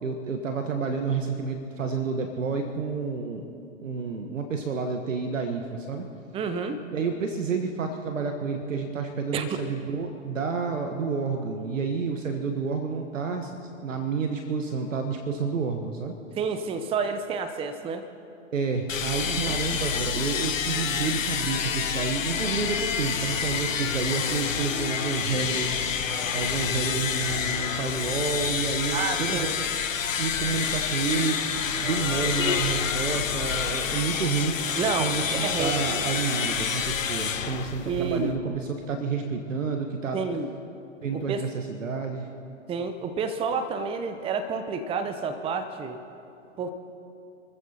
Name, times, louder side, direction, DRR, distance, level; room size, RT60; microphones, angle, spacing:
voice 1, 0.0-3.5 3.8-6.0 6.9-13.5 13.8-16.1 18.5-25.8 26.3-29.5 30.2-31.4 31.6-40.2 41.0-42.3, right 5 dB, 70° right, 5 dB, 1.4 m, -29 dB
voice 2, 6.3-6.8 9.3-9.6 16.4-18.1 19.2-19.6 28.9-29.5 34.8-36.1 37.9-38.3 40.1-40.5 41.1-41.5 42.7-46.0 46.6-46.7, right 5 dB, 15° right, 9 dB, 0.8 m, -30 dB
sound 1, 18.9-38.4, left 7 dB, 75° left, 1.2 m, -28 dB
29.0 x 14.5 x 2.9 m, 2.7 s
figure-of-eight pair, 110°, 39 cm